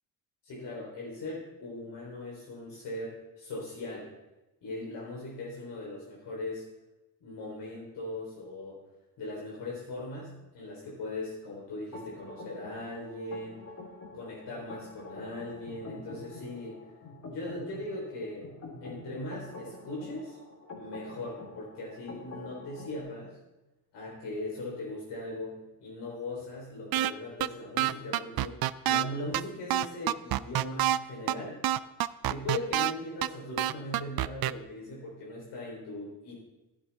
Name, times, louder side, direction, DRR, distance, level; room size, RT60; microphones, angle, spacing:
voice 1, 0.4-4.1 4.6-6.7 7.2-8.8 9.2-13.6 14.1-16.9 17.3-18.5 18.8-20.4 20.7-23.4 23.9-31.6 32.3-36.3, left 2 dB, 75° left, -4 dB, 3.9 m, -39 dB
sound 1, 11.9-23.0, left 2 dB, 45° left, 3.8 m, -46 dB
sound 2, 26.9-27.1 27.4-27.5 27.8-29.0 29.3-29.4 29.7-31.0 31.3-31.4 31.6-32.9 33.2-33.3 33.6-34.5, right 13 dB, 60° right, 0.5 m, -26 dB
15.0 x 11.5 x 3.5 m, 1.0 s
cardioid pair, 115°, 41 cm